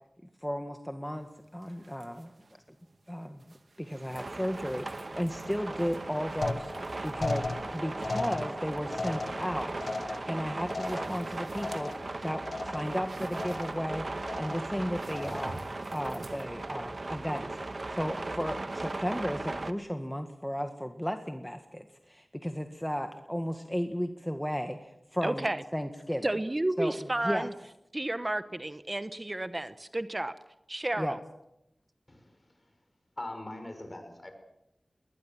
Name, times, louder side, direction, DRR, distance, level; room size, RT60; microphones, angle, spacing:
voice 1, 0.4-2.3 3.1-6.7 7.0-7.5 7.7-9.8 10.3-11.9 12.2-14.1 14.4-15.6 15.9-17.5 17.9-25.5 25.7-26.3 26.8-26.9 27.2-27.5 31.0-31.2, equal, 5° left, 6 dB, 1.7 m, -34 dB
sound 1, 1.0-16.4, right 2 dB, 75° right, 2.3 m, -52 dB
sound 2, 4.2-19.7, right 2 dB, 55° right, 1.4 m, -38 dB
sound 3, 6.4-12.2 12.5-13.0 13.3-13.9 14.2-14.7 15.1-15.7, left 3 dB, 75° left, 1.4 m, -37 dB
voice 2, 25.2-25.6 26.2-27.5 27.9-30.3 30.7-31.2, right 1 dB, 30° right, 12 dB, 1.0 m, -31 dB
voice 3, 32.1-32.5 33.2-34.3, left 1 dB, 40° left, 6 dB, 5.7 m, -41 dB
21.0 x 19.5 x 7.4 m, 0.85 s
wide cardioid pair, 50°, 0 cm